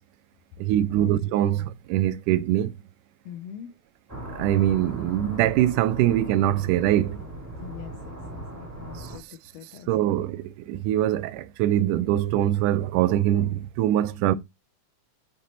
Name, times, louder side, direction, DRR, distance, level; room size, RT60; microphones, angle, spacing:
voice 1, 0.6-2.7 4.4-7.2 9.9-14.4, right 12 dB, 85° right, 2.1 m, -23 dB
voice 2, 3.2-3.7 7.6-10.2, left 10 dB, 85° left, 1.4 m, -43 dB
sound 1, 4.1-9.2, right 1 dB, 5° right, 1.7 m, -38 dB
8.5 x 5.6 x 3.0 m
omnidirectional pair, 3.6 m